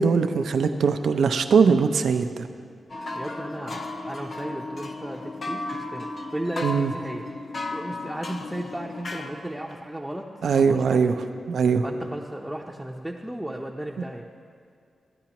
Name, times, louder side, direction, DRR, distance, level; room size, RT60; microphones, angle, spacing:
voice 1, 0.0-2.4 6.6-6.9 10.4-11.1 11.5-11.8, right 5 dB, 80° right, 8 dB, 0.5 m, -21 dB
sound 1, 2.9-9.8, left 2 dB, 50° left, 0.7 m, -35 dB
voice 2, 3.1-6.1 6.3-7.2 7.7-11.1 11.8-14.3, right 1 dB, 5° right, -2 dB, 0.6 m, -35 dB
15.0 x 9.2 x 3.0 m, 2.3 s
cardioid pair, 80°, 0 cm